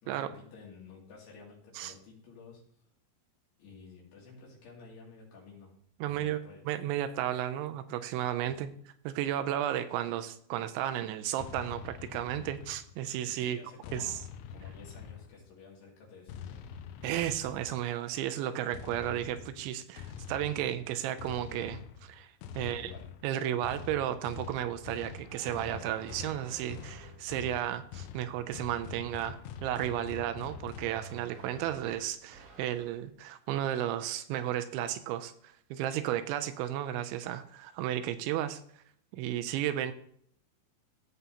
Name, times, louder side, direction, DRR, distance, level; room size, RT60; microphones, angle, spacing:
voice 1, 0.0-2.6 3.6-5.7 6.0-6.7 8.5-8.7 13.4-14.2 14.5-16.7 22.5-23.1, left 4 dB, 60° left, -4 dB, 4.4 m, -52 dB
voice 2, 6.0-8.7 9.1-13.6 13.9-14.2 17.0-22.3 22.6-22.9 23.2-38.6 39.1-39.9, right 12 dB, 85° right, 10 dB, 2.9 m, -33 dB
sound 1, 11.4-13.2 13.8-15.6 16.3-17.9 18.7-31.0, left 7 dB, 85° left, 3.0 m, -45 dB
sound 2, 25.0-27.3 29.9-33.0, right 4 dB, 55° right, 1.8 m, -52 dB
15.5 x 5.6 x 2.8 m, 0.64 s
omnidirectional pair, 5.4 m